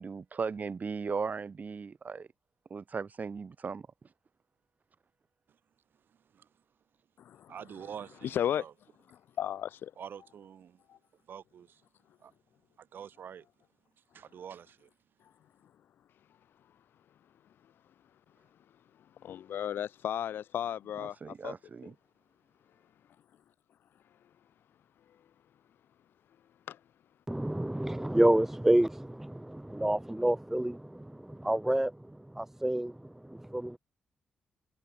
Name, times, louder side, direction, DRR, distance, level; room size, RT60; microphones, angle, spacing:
voice 1, 0.0-2.3 2.7-3.9 21.2-21.9, right 5 dB, 45° right, 1.7 m, -37 dB
voice 2, 6.1-6.5 7.5-8.7 10.0-10.8 11.3-11.8 12.2-12.3 12.8-13.5 14.1-14.9, right 8 dB, 65° right, 1.6 m, -46 dB
voice 3, 7.2-7.5 8.2-8.6 9.4-9.9 10.9-11.0 19.2-21.5 21.8-21.9 26.7-26.8, left 10 dB, 70° left, 0.8 m, -34 dB
voice 4, 27.3-33.8, right 1 dB, 10° right, 0.5 m, -29 dB
hypercardioid pair, 45°, 4 cm